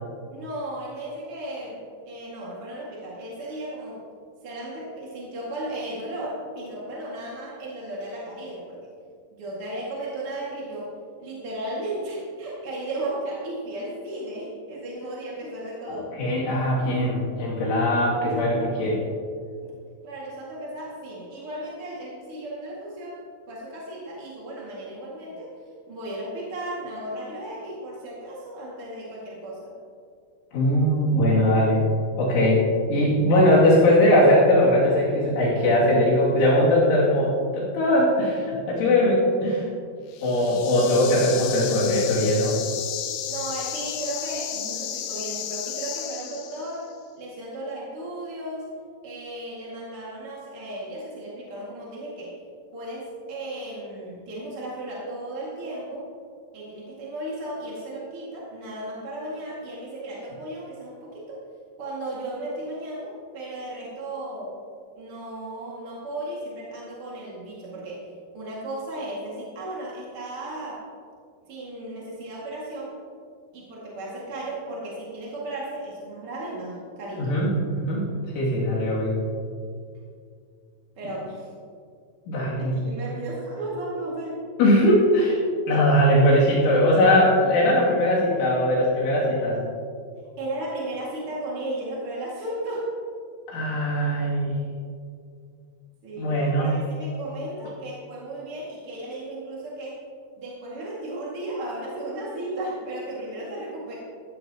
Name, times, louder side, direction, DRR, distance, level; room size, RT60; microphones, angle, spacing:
voice 1, 0.3-1.8 2.0-4.0 4.4-8.8 9.4-10.9 11.2-16.1 19.6-19.7 20.0-23.2 23.5-25.5 25.9-29.7 43.3-46.9 47.1-48.7 49.0-52.4 52.7-56.1 56.5-61.4 61.8-64.5 65.0-68.0 68.3-70.9 71.5-72.9 73.5-77.3 81.0-81.5 82.6-84.4 90.4-92.9 96.0-100.0 100.4-103.9, right 1 dB, 45° right, -6 dB, 1.9 m, -35 dB
voice 2, 15.9-19.0 30.5-31.8 32.2-32.6 32.9-39.6 40.2-42.6 77.2-78.1 78.3-79.2 82.3-82.7 84.6-85.4 85.7-89.6 93.5-94.6 96.2-96.8, left 1 dB, 70° left, -7 dB, 5.0 m, -20 dB
sound 1, 40.1-46.8, left 10 dB, 90° left, 3.5 m, -33 dB
16.0 x 15.0 x 3.0 m, 2.3 s
omnidirectional pair, 5.8 m